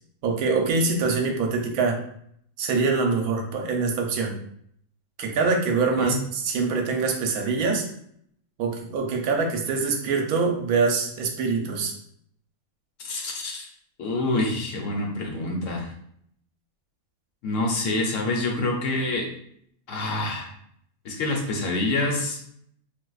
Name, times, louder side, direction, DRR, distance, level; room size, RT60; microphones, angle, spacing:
voice 1, 0.2-2.0 2.6-4.3 5.2-7.8 8.6-11.9, right 4 dB, 80° right, 2 dB, 1.1 m, -24 dB
voice 2, 13.0-13.7 14.0-15.9 17.4-19.3 19.9-20.5 21.0-22.4, left 2 dB, 65° left, 0 dB, 1.0 m, -26 dB
4.1 x 2.5 x 2.3 m, 0.68 s
omnidirectional pair, 1.5 m